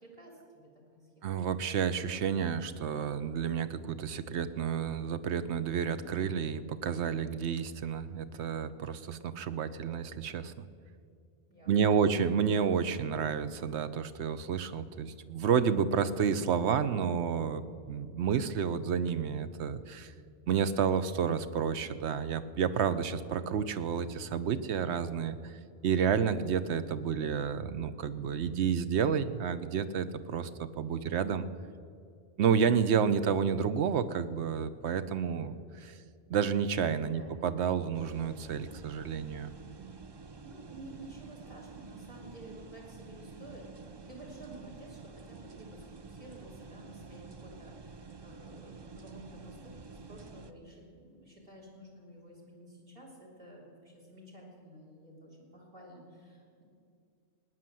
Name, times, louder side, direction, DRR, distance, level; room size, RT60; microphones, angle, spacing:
voice 1, 0.0-1.3 11.5-12.2 37.1-37.4 40.4-56.6, right 1 dB, 55° right, -1 dB, 3.6 m, -52 dB
voice 2, 1.2-10.7 11.7-20.1 20.5-25.5 25.8-31.5 32.4-36.0 36.3-39.5, right 7 dB, 80° right, 13 dB, 1.0 m, -30 dB
sound 1, 37.9-50.5, right 4 dB, 35° right, 0.4 m, -49 dB
19.0 x 9.4 x 7.6 m, 2.4 s
omnidirectional pair, 1.1 m